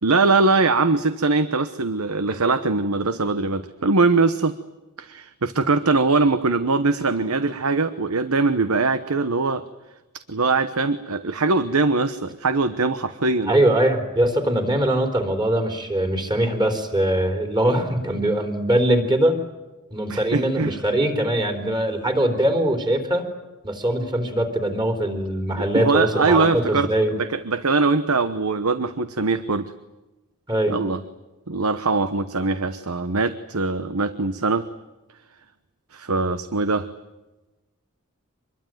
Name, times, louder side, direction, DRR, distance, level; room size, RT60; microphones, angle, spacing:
voice 1, 0.0-4.5 5.0-9.6 10.3-13.5 20.1-20.8 25.6-29.7 30.7-31.0 31.5-34.6 35.9-36.9, right 3 dB, 70° right, 12 dB, 1.1 m, -22 dB
voice 2, 13.4-19.4 19.9-23.3 23.6-27.1 30.5-30.8, right 1 dB, 20° right, 6 dB, 3.9 m, -22 dB
26.0 x 22.0 x 9.2 m, 1.1 s
head